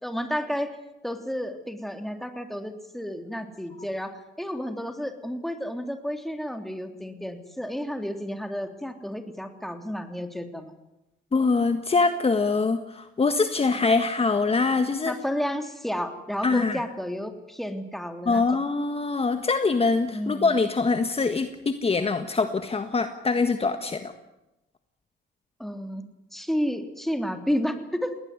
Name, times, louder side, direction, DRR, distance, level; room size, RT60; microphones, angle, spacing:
voice 1, 0.0-0.7 1.0-10.7 15.0-18.6 20.1-20.6 25.6-26.0 26.3-28.2, equal, ahead, 6 dB, 3.2 m, -31 dB
voice 2, 11.3-15.1 16.4-16.8 18.3-24.1, left 4 dB, 30° left, 8 dB, 1.6 m, -24 dB
20.0 x 19.0 x 9.7 m, 0.92 s
cardioid pair, 90°, 20 cm